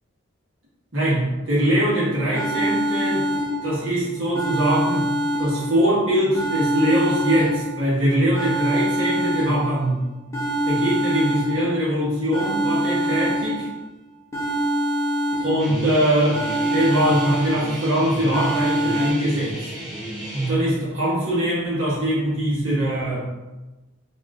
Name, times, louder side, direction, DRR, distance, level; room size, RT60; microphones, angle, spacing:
voice 1, 0.9-3.3 3.6-5.1 5.4-10.0 10.6-13.7 15.4-19.7 20.3-23.3, right 1 dB, 75° right, -8 dB, 1.4 m, -22 dB
sound 1, 1.9-2.0 2.3-3.9 4.3-5.9 6.3-7.9 8.3-9.9 10.3-11.9 12.3-13.9 14.3-15.9 16.3-17.9 18.3-19.1, equal, 15° left, 0.5 m, -25 dB
Guitar, 15.6-20.5, right 1 dB, 45° right, 1.4 m, -33 dB
3.9 x 2.9 x 2.4 m, 1.1 s
head